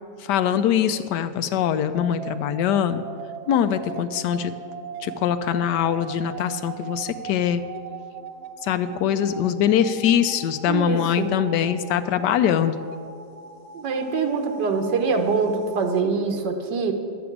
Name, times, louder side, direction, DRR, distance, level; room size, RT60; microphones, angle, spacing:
voice 1, 0.2-3.0 3.5-4.5 5.0-7.6 8.6-12.8, left 9 dB, 80° left, 11 dB, 1.2 m, -22 dB
sound 1, 1.9-16.0, right 7 dB, 70° right, 1.1 m, -40 dB
voice 2, 10.7-11.3 13.7-16.9, right 4 dB, 90° right, 5 dB, 1.7 m, -24 dB
11.0 x 6.9 x 8.4 m, 2.3 s
omnidirectional pair, 1.8 m